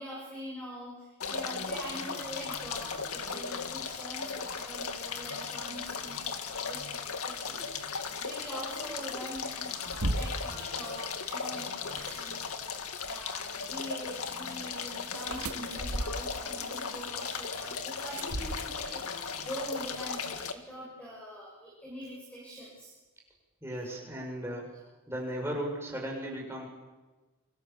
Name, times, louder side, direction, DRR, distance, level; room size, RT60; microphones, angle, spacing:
voice 1, 0.0-7.8 8.2-22.9, equal, 5° left, -5 dB, 6.9 m, -44 dB
sound 1, 1.2-20.5, left 5 dB, 80° left, 2.1 m, -37 dB
sound 2, 9.6-10.6 11.8-12.2 15.1-16.5 18.1-19.0, right 1 dB, 80° right, 2.0 m, -35 dB
sound 3, 13.7-18.9, right 1 dB, 55° right, 4.0 m, -52 dB
voice 2, 23.6-24.7 25.1-26.7, equal, 10° right, 0 dB, 6.6 m, -36 dB
28.5 x 26.0 x 7.2 m, 1.2 s
head